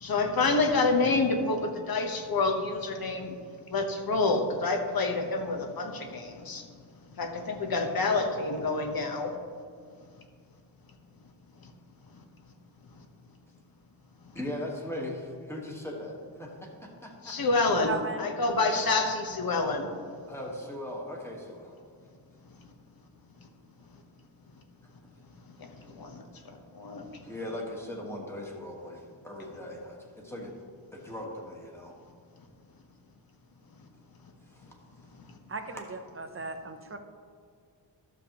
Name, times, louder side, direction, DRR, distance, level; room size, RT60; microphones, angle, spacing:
voice 1, 0.0-3.4 3.7-6.6 7.2-9.3 17.2-19.9 25.6-25.7 26.0-26.2 26.7-27.0, left 3 dB, 50° left, 4 dB, 1.0 m, -27 dB
voice 2, 14.3-17.4 20.3-21.8 25.1-25.2 27.2-30.6 30.9-31.9 34.5-34.7, left 1 dB, 5° left, -2 dB, 1.4 m, -39 dB
voice 3, 17.7-18.3 35.5-37.0, right 4 dB, 30° right, 6 dB, 0.6 m, -36 dB
12.0 x 7.2 x 2.9 m, 2.2 s
wide cardioid pair, 150°, 44 cm